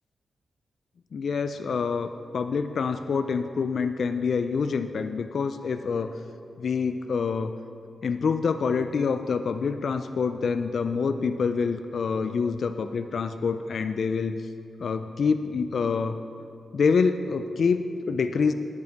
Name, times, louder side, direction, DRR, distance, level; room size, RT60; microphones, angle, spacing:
voice 1, 1.1-6.2 6.6-7.5 8.0-14.4 14.8-16.2 16.7-18.5, left 5 dB, 65° left, 9 dB, 0.4 m, -26 dB
9.7 x 9.5 x 4.0 m, 2.4 s
cardioid pair, 85°, 0 cm